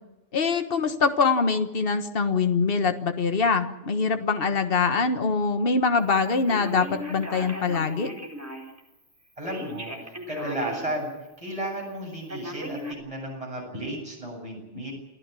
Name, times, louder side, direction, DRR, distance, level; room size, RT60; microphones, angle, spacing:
voice 1, 0.3-8.1, left 4 dB, 55° left, 8 dB, 1.6 m, -24 dB
Telephone, 6.5-8.8 9.5-10.9 11.4-11.5 12.3-12.9, equal, 15° right, 4.5 m, -37 dB
voice 2, 9.4-11.1 11.4-14.9, right 1 dB, 30° right, -1 dB, 7.9 m, -33 dB
28.5 x 15.0 x 8.4 m, 0.98 s
omnidirectional pair, 1.2 m